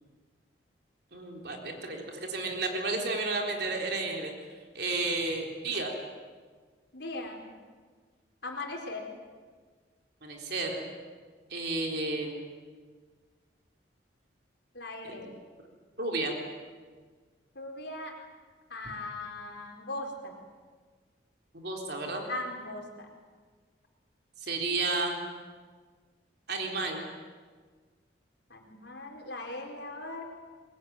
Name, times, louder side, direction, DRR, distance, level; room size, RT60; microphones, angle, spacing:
voice 1, 1.1-2.0 2.3-4.3 4.7-5.9 10.2-10.9 11.5-12.3 15.0-15.3 16.0-16.4 21.5-22.2 24.4-25.2 26.5-27.0, right 3 dB, 60° right, 1 dB, 3.9 m, -32 dB
voice 2, 6.9-7.4 8.4-9.1 14.7-15.2 17.6-18.1 18.7-20.3 22.3-22.8 28.5-30.2, left 2 dB, 65° left, 1 dB, 4.3 m, -39 dB
22.5 x 22.5 x 9.5 m, 1.5 s
head